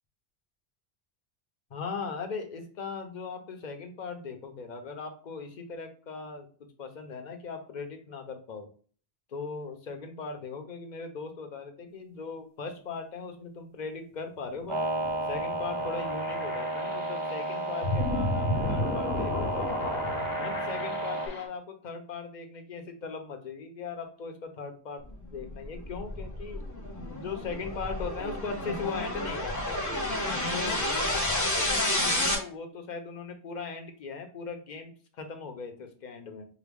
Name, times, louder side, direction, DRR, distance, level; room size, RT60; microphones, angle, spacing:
voice 1, 1.7-6.5 6.8-8.7 9.3-14.8 15.3-20.0 20.4-25.0 25.3-26.6 27.1-29.8 30.2-36.5, left 5 dB, 50° left, 5 dB, 0.7 m, -39 dB
sound 1, 14.5-21.5, left 1 dB, 70° left, 1.1 m, -33 dB
sound 2, 14.7-21.3, right 2 dB, 40° right, 0.4 m, -32 dB
sound 3, 25.4-32.3, left 1 dB, 20° left, 0.8 m, -30 dB
4.7 x 2.2 x 3.5 m, 0.43 s
omnidirectional pair, 1.1 m